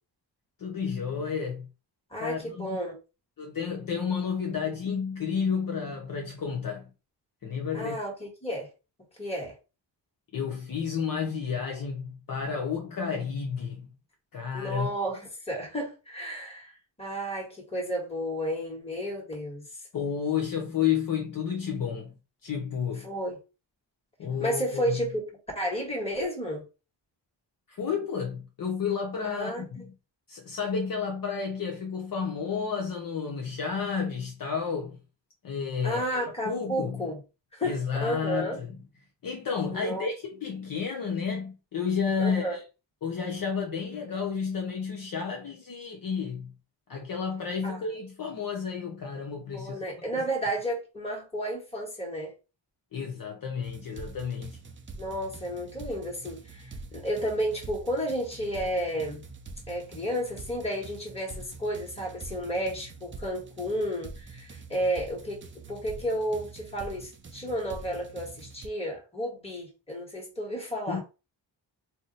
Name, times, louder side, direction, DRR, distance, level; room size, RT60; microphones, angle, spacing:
voice 1, 0.6-1.7 2.2-2.8 3.4-6.9 7.4-8.0 10.3-13.9 14.3-14.9 19.9-22.1 22.4-23.1 24.2-25.0 27.7-29.9 30.3-35.0 35.4-36.0 36.5-37.1 37.6-38.7 39.2-42.6 43.0-46.5 46.9-49.8 52.9-54.6 70.9-71.0, left 6 dB, 50° left, 0.7 m, -31 dB
voice 2, 2.1-2.9 7.7-8.7 9.2-9.6 14.5-19.9 23.0-23.4 24.4-25.2 25.5-26.6 29.2-29.9 35.8-37.2 37.5-38.6 39.7-40.1 42.2-42.6 47.6-47.8 49.5-52.3 55.0-59.2 59.7-65.4 65.7-71.0, equal, 15° left, 1.5 m, -32 dB
sound 1, 53.6-68.7, right 3 dB, 30° right, 0.4 m, -45 dB
2.7 x 2.0 x 3.9 m
cardioid pair, 85°, 44 cm